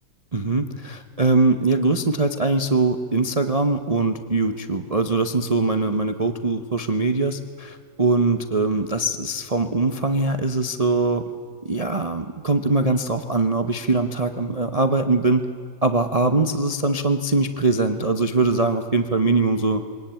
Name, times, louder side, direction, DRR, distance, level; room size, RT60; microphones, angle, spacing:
voice 1, 0.3-11.2 11.6-15.4 15.8-19.8, right 3 dB, 60° right, 8 dB, 0.3 m, -22 dB
23.5 x 18.5 x 8.9 m, 2.3 s
omnidirectional pair, 2.2 m